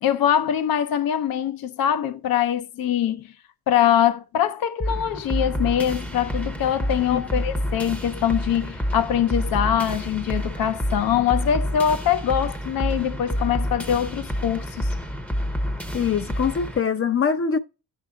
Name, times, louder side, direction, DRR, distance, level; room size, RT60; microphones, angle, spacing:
voice 1, 0.0-3.3 3.7-14.9, left 9 dB, 70° left, 0.8 m, -23 dB
sound 1, 4.8-16.8, equal, 5° left, 0.7 m, -28 dB
voice 2, 15.9-17.6, left 6 dB, 40° left, 0.6 m, -23 dB
10.0 x 5.5 x 3.7 m
cardioid pair, 140°, 37 cm